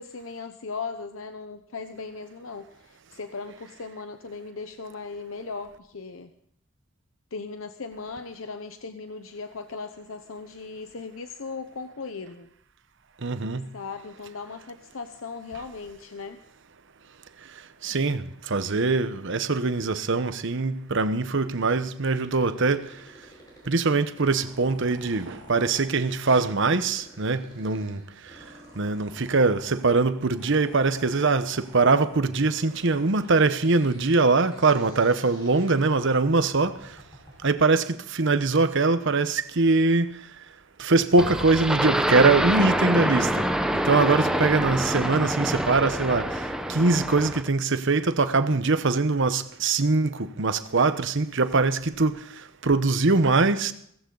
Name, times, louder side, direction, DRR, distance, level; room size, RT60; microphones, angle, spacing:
voice 1, 0.0-6.3 7.3-12.5 13.7-16.4, left 4 dB, 75° left, 0.9 m, -38 dB
voice 2, 13.2-13.6 17.8-22.9 23.7-28.0 28.8-36.7 37.4-40.2 40.8-43.4 43.8-52.2 52.6-53.7, right 3 dB, 65° right, 1.0 m, -22 dB
sound 1, 22.2-37.5, equal, 20° left, 4.9 m, -51 dB
sound 2, 41.2-47.5, right 1 dB, 5° right, 1.0 m, -26 dB
17.0 x 15.5 x 4.0 m
head